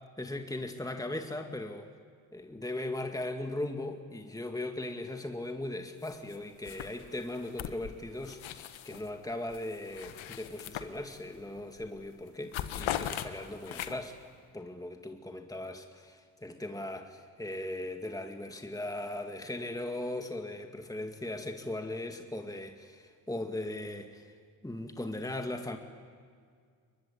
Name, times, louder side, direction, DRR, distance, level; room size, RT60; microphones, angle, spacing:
voice 1, 0.2-1.9 2.3-14.2 14.5-24.3 24.6-25.8, left 1 dB, 5° left, 5 dB, 2.1 m, -38 dB
sound 1, 6.0-6.4 6.6-9.1 9.5-11.4 11.8-12.0 12.3-14.2, left 10 dB, 70° left, 1.4 m, -39 dB
23.0 x 22.0 x 9.7 m, 2.1 s
hypercardioid pair, 40°, 49 cm